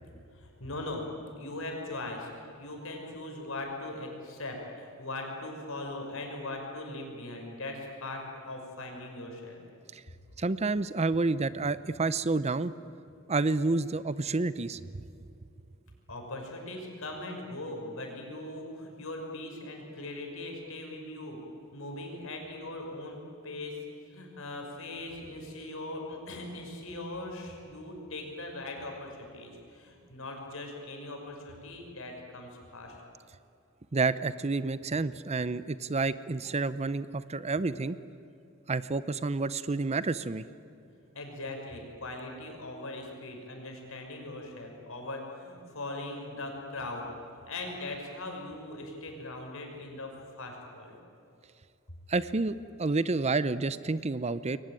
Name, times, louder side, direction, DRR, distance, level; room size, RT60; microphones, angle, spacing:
voice 1, 0.3-1.1 1.3-2.3 2.6-9.6 16.1-21.4 21.7-33.0 41.1-47.1 47.5-51.0, left 2 dB, 70° left, 1 dB, 5.9 m, -40 dB
voice 2, 10.4-12.7 13.3-14.8 33.9-38.0 38.7-40.4 52.1-54.6, right 3 dB, 30° right, 16 dB, 0.6 m, -29 dB
28.5 x 22.5 x 9.2 m, 2.6 s
head